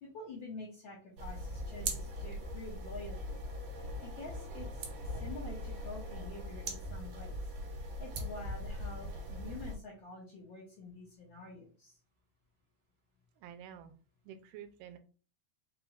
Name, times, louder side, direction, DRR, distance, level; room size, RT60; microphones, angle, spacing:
voice 1, 0.0-3.4 4.0-7.4 8.0-12.0, left 2 dB, 70° left, -5 dB, 1.1 m, -48 dB
sound 1, 1.2-9.8, equal, 70° right, 1.6 m, -40 dB
voice 2, 13.4-13.9 14.2-15.0, right 9 dB, 85° right, 8 dB, 2.2 m, -49 dB
5.3 x 2.3 x 4.0 m, 0.38 s
omnidirectional pair, 3.8 m